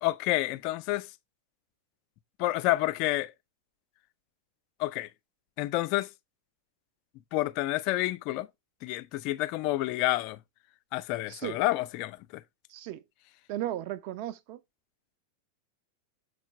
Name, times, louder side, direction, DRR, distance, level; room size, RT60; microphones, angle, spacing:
voice 1, 0.0-1.1 2.4-3.3 4.8-5.1 5.6-6.1 7.3-8.5 8.8-10.4 10.9-12.4, left 17 dB, 45° left, 0.5 m, -29 dB
voice 2, 12.7-13.0 13.5-14.6, right 13 dB, 45° right, 0.7 m, -35 dB
6.6 x 4.5 x 4.2 m
figure-of-eight pair, 90°, 0 cm